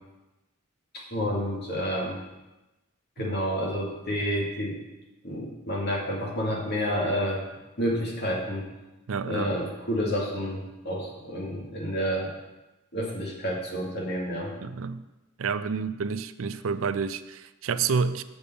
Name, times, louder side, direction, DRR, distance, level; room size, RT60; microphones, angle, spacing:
voice 1, 0.9-2.2 3.2-4.8 5.2-7.4 7.8-8.7 9.2-12.3 12.9-14.5, equal, 50° left, 2.2 m, -29 dB
voice 2, 9.1-9.6 14.6-15.0 15.4-18.2, right 5 dB, 75° right, 0.4 m, -29 dB
7.0 x 6.5 x 6.8 m
head